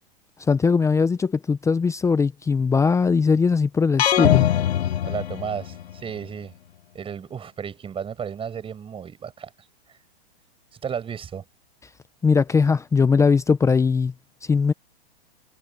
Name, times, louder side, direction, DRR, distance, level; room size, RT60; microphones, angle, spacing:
voice 1, 0.4-4.4 12.2-14.1 14.5-14.7, left 5 dB, 10° left, 0.8 m, -20 dB
sound 1, 4.0-6.0, left 11 dB, 80° left, 1.1 m, -21 dB
voice 2, 5.0-6.5 6.9-10.0 10.8-11.4, right 7 dB, 20° right, 6.1 m, -33 dB
hypercardioid pair, 135°, 31 cm